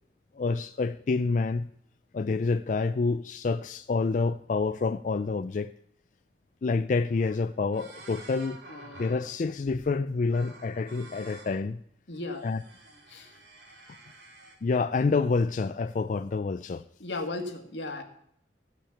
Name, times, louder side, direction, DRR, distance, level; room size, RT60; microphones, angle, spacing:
voice 1, 0.3-1.7 2.1-5.7 6.6-8.6 9.0-11.8 12.4-12.6 14.6-16.8, left 4 dB, 45° left, 11 dB, 0.4 m, -28 dB
sound 1, 7.1-7.4 7.7-9.9 10.3-11.6 12.2-14.5, right 2 dB, 65° right, 3.4 m, -50 dB
voice 2, 8.7-9.2 12.1-12.5 13.1-13.3 17.0-18.0, left 2 dB, 85° left, 5 dB, 1.7 m, -36 dB
15.5 x 5.9 x 7.0 m, 0.69 s
head